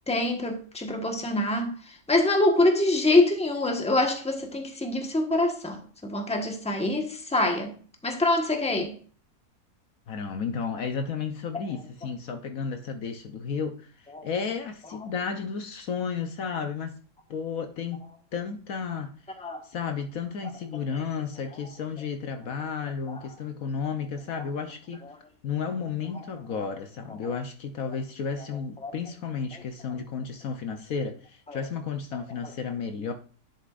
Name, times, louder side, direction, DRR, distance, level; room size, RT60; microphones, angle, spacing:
voice 1, 0.1-1.7 2.1-7.7 8.0-8.9 14.1-14.3 19.4-19.6 23.1-23.2 28.8-28.9 31.5-31.6 32.4-32.5, left 2 dB, 5° left, 1.2 m, -25 dB
voice 2, 10.1-13.9 14.2-17.0 17.3-18.1 18.3-19.1 19.6-25.0 25.4-33.1, left 6 dB, 65° left, 1.2 m, -32 dB
11.0 x 7.3 x 2.5 m
omnidirectional pair, 1.7 m